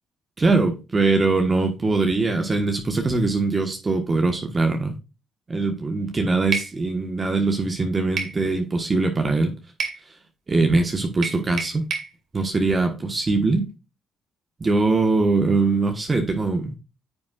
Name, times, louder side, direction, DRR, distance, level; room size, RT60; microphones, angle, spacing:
voice 1, 0.4-4.9 5.5-9.5 10.5-11.8 12.3-13.6 14.6-16.8, right 3 dB, 30° right, 1.3 m, -22 dB
sound 1, 6.5-6.7 8.2-8.4 9.8-10.0 11.2-12.1, right 5 dB, 60° right, 2.3 m, -28 dB
9.8 x 7.1 x 2.5 m
cardioid pair, 90°, 0 cm